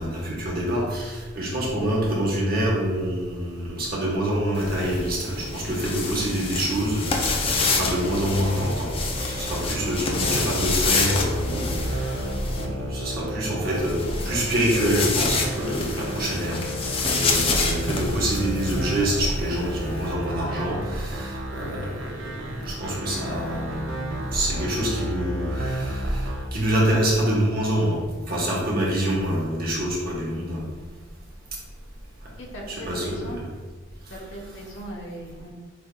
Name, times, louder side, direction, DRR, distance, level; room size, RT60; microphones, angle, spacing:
voice 1, 0.0-8.9 9.2-12.3 12.6-14.0 14.2-16.6 17.0-22.3 22.6-28.0 28.3-30.6 32.7-33.4, right 1 dB, 45° right, -4 dB, 1.1 m, -26 dB
sound 1, 4.5-12.7 13.7-20.1, left 4 dB, 25° left, 0.4 m, -28 dB
sound 2, 7.1-26.5, right 1 dB, 65° right, 0.6 m, -31 dB
voice 2, 32.4-33.4 34.1-35.5, equal, 70° left, -2 dB, 0.9 m, -38 dB
4.7 x 3.6 x 2.3 m, 1.3 s
head